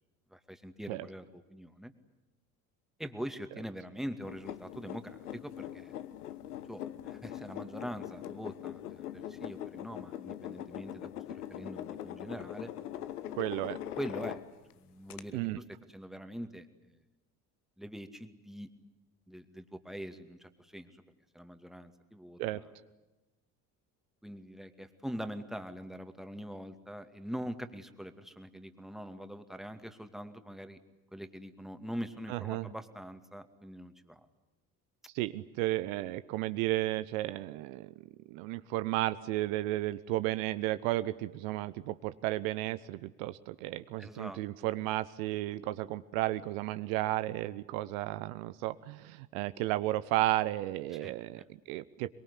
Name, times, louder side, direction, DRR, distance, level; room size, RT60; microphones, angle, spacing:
voice 1, 0.3-1.9 3.0-5.9 6.7-12.7 14.0-14.4 14.8-15.6 15.9-16.9 17.8-18.7 19.3-21.0 21.3-22.6 24.2-30.8 31.1-34.3 44.0-44.4 51.0-51.5, equal, ahead, 8 dB, 2.4 m, -43 dB
sound 1, 4.2-14.7 15.1-15.2, left 11 dB, 80° left, 1.2 m, -42 dB
voice 2, 13.3-13.8 15.3-15.6 22.4-22.6 32.3-32.7 35.1-37.9 38.3-52.1, right 16 dB, 65° right, 13 dB, 1.0 m, -33 dB
23.5 x 22.5 x 10.0 m, 1.0 s
hypercardioid pair, 60°, 44 cm